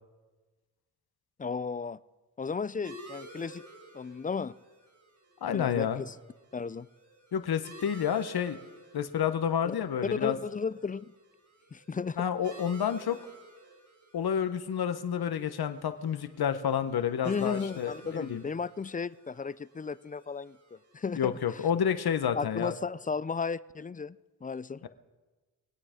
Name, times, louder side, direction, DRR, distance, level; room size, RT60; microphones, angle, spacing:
voice 1, 1.4-2.0 2.4-3.6 3.9-4.5 5.5-6.1 6.5-6.9 10.2-11.1 11.7-12.3 17.2-21.3 22.4-24.8, left 5 dB, 20° left, 18 dB, 0.4 m, -34 dB
sound 1, 2.8-22.0, right 1 dB, 50° right, 5.0 m, -53 dB
voice 2, 5.4-6.0 7.3-8.6 8.9-10.4 12.2-13.2 14.1-18.4 21.1-22.7 24.8-24.9, left 8 dB, 65° left, 11 dB, 0.9 m, -29 dB
23.0 x 8.7 x 5.0 m, 1.3 s
cardioid pair, 55°, 40 cm